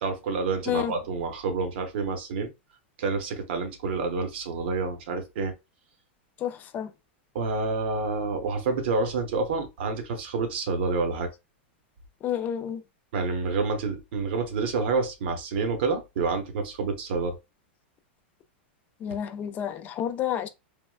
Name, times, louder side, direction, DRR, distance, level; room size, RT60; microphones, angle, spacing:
voice 1, 0.0-2.5 3.0-5.5 7.3-11.3 13.1-17.4, right 4 dB, 70° right, 0.8 m, -28 dB
voice 2, 6.4-6.9 12.2-12.8 19.0-20.5, left 10 dB, 30° left, 0.4 m, -30 dB
3.5 x 2.1 x 2.3 m
hypercardioid pair, 135°, 6 cm